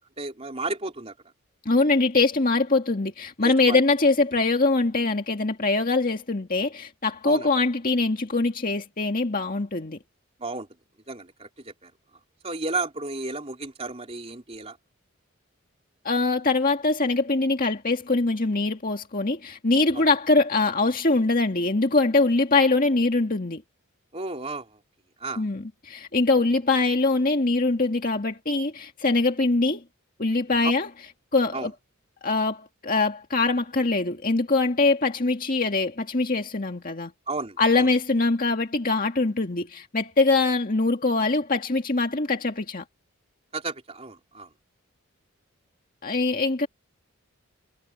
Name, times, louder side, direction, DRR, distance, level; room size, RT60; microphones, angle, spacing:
voice 1, 0.2-1.1 3.4-3.8 7.2-7.5 10.4-10.7 11.1-11.9 12.4-14.8 19.9-20.1 24.1-24.8 25.2-25.5 30.6-30.7 31.5-31.7 37.3-37.9 43.5-44.5, right 3 dB, 30° right, 3.2 m, -33 dB
voice 2, 1.7-10.0 16.0-23.6 25.4-29.8 30.2-30.9 31.3-31.7 32.2-37.1 37.6-42.8 46.0-46.7, left 3 dB, 40° left, 1.9 m, -23 dB
head